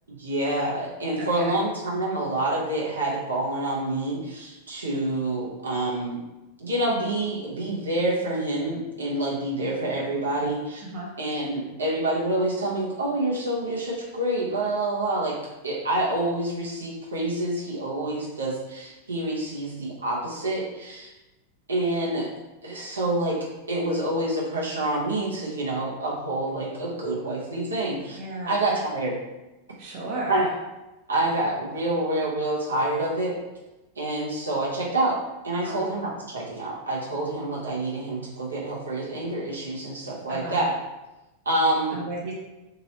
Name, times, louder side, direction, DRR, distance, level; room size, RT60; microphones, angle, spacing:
voice 1, 0.1-6.2 6.6-10.8 11.2-15.4 15.6-21.1 21.7-22.3 22.6-23.4 23.7-28.2 28.5-29.2 30.3-30.5 31.1-33.4 34.0-35.2 35.4-40.8 41.5-42.0, right 1 dB, 75° right, -5 dB, 0.8 m, -27 dB
voice 2, 1.2-1.5 10.8-11.1 28.2-28.6 29.8-30.5 35.5-35.8 40.3-40.6 41.9-42.3, right 2 dB, 45° right, -3 dB, 0.7 m, -34 dB
3.0 x 2.9 x 2.8 m, 1.0 s
figure-of-eight pair, 90°, 0 cm